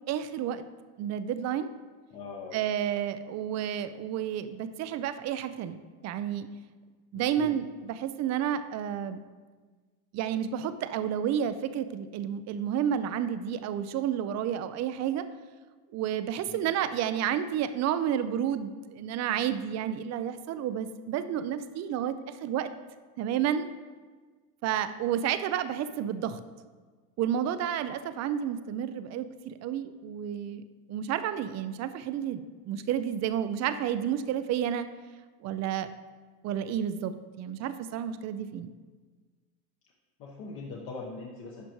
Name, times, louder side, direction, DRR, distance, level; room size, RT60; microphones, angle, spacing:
voice 1, 0.1-0.6 1.0-1.7 2.5-5.8 6.0-6.5 7.1-9.2 10.1-15.2 15.9-22.7 23.2-23.7 24.6-26.4 27.2-30.6 30.9-34.9 35.4-35.9 36.4-38.7, right 9 dB, 40° right, 12 dB, 0.4 m, -31 dB
voice 2, 2.1-2.6 7.1-7.6 16.5-16.7 40.2-41.7, left 4 dB, 55° left, -2 dB, 1.1 m, -41 dB
11.0 x 5.0 x 3.1 m, 1.4 s
supercardioid pair, 110°, 44 cm